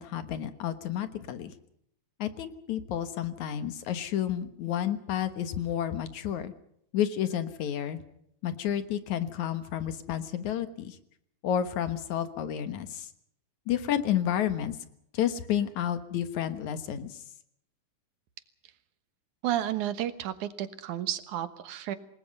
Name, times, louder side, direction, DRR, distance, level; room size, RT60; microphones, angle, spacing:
voice 1, 0.0-1.5 2.2-6.5 6.9-8.0 8.4-11.0 11.4-13.1 13.7-14.8 15.1-17.2, left 10 dB, 75° left, 11 dB, 2.7 m, -30 dB
voice 2, 19.4-22.0, right 11 dB, 80° right, 11 dB, 2.8 m, -32 dB
27.5 x 20.0 x 5.4 m, 0.71 s
omnidirectional pair, 3.4 m